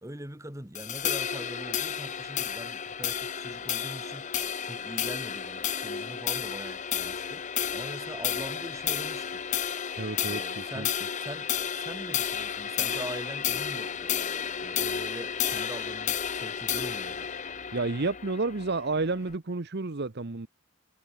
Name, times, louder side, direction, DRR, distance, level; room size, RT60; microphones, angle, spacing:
voice 1, 0.0-9.4 10.2-14.1 14.6-17.3, right 1 dB, 15° right, 2.4 m, -43 dB
sound 1, 0.7-19.3, left 8 dB, 35° left, 0.8 m, -32 dB
voice 2, 10.0-10.9 17.7-20.5, right 3 dB, 50° right, 0.9 m, -30 dB
head